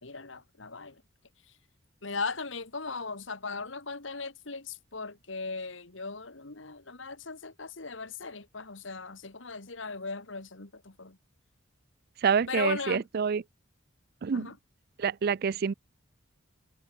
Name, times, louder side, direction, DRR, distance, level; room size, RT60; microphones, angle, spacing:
voice 1, 0.0-1.0 2.0-11.2 12.5-13.0 14.3-14.5, left 4 dB, 70° left, 2.1 m, -38 dB
voice 2, 12.2-13.4 14.2-14.5 15.0-15.7, right 6 dB, 50° right, 0.4 m, -27 dB
head